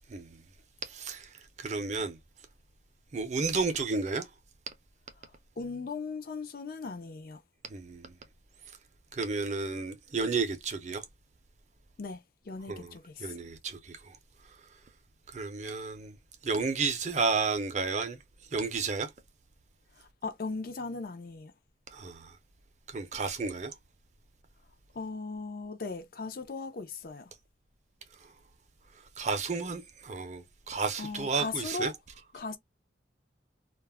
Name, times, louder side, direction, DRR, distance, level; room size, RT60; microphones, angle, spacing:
voice 1, 0.8-2.2 3.1-4.3 7.7-8.1 9.1-11.0 12.7-12.9 13.2-14.2 15.3-16.2 16.4-18.2 18.5-19.1 21.9-22.4 22.9-23.7 28.2-28.3 29.2-31.9, right 4 dB, 40° right, 0.5 m, -32 dB
voice 2, 5.6-7.4 12.0-13.4 20.0-21.5 24.9-27.3 31.0-31.9 32.3-32.6, left 4 dB, 50° left, 0.4 m, -38 dB
2.3 x 2.0 x 3.3 m
head